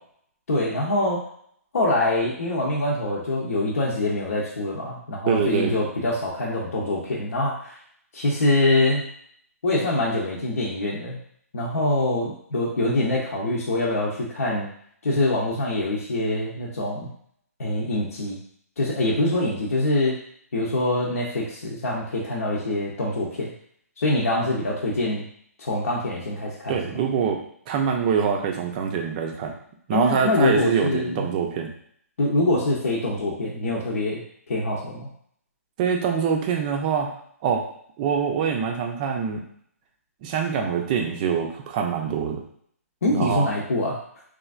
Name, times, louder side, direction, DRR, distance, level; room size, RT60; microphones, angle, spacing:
voice 1, 0.5-1.2 1.7-7.8 8.1-9.1 9.6-11.2 11.5-14.7 15.0-17.1 17.6-18.4 18.8-20.2 20.5-23.5 24.0-25.3 25.6-27.0 29.9-31.3 32.2-34.2 34.5-35.1 43.0-44.0, left 2 dB, 70° left, -6 dB, 0.7 m, -24 dB
voice 2, 5.3-5.7 26.7-27.4 27.7-29.5 29.9-31.7 35.8-37.1 37.4-37.6 38.0-39.4 40.2-42.4 43.1-43.5, right 7 dB, 30° right, 2 dB, 0.5 m, -24 dB
3.2 x 2.4 x 2.4 m, 0.64 s
hypercardioid pair, 140°, 8 cm